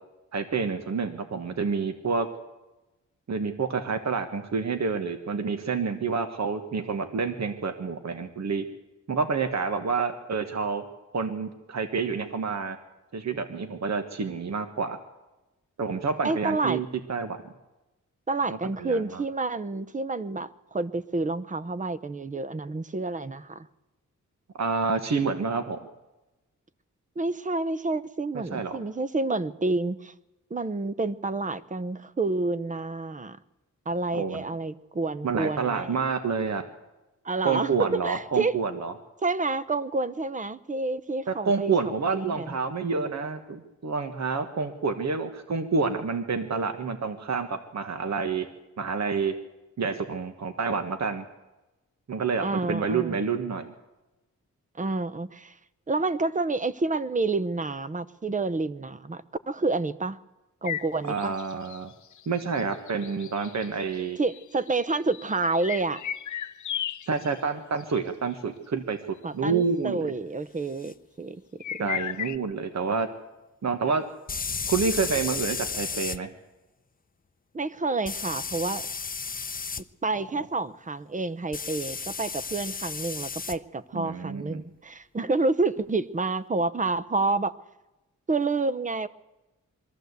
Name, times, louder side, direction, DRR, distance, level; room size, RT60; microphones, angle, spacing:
voice 1, 0.3-2.3 3.3-8.7 9.1-10.8 11.1-12.8 13.1-15.0 15.8-17.4 18.8-19.2 24.6-25.9 28.3-28.8 34.1-34.4 35.2-36.6 37.4-38.9 41.3-48.5 48.8-49.3 49.8-51.2 52.1-53.7 61.0-61.9 62.3-64.2 67.1-69.0 69.3-70.1 71.8-73.1 73.6-74.0 74.7-76.3 80.4-80.5 83.9-84.6, right 5 dB, 60° right, 8 dB, 1.4 m, -28 dB
voice 2, 16.2-16.8 18.3-23.7 27.2-30.1 30.5-33.4 33.9-36.0 37.2-38.6 39.2-42.6 52.4-53.2 54.8-55.5 55.9-60.2 60.6-61.3 64.2-66.0 69.2-71.4 71.7-71.9 77.5-78.9 80.0-87.5 88.3-89.1, right 3 dB, 25° right, 15 dB, 0.8 m, -29 dB
sound 1, 60.7-67.4 67.8-68.0 68.3-68.4 69.6-69.7 71.6-72.4, left 10 dB, 70° left, 0.7 m, -35 dB
sound 2, 70.8-70.9 74.3-76.2 78.0-79.8 81.5-83.6, left 5 dB, 30° left, 0.6 m, -33 dB
22.5 x 14.0 x 8.1 m, 1.0 s
wide cardioid pair, 110°, 30 cm